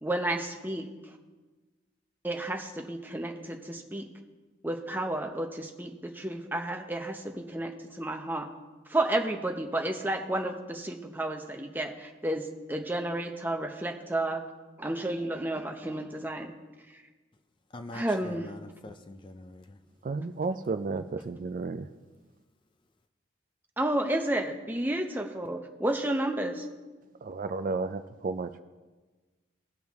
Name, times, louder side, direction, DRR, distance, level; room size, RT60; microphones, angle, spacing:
voice 1, 0.0-1.2 2.2-4.1 4.6-8.5 8.9-14.5 14.8-16.5 16.9-17.0 17.9-18.5 23.8-26.7, right 1 dB, 10° right, 4 dB, 0.7 m, -31 dB
voice 2, 17.7-19.8, left 2 dB, 25° left, 8 dB, 0.4 m, -44 dB
voice 3, 20.0-21.8 27.2-28.6, right 3 dB, 45° right, 11 dB, 0.3 m, -32 dB
18.0 x 6.2 x 3.5 m, 1.3 s
head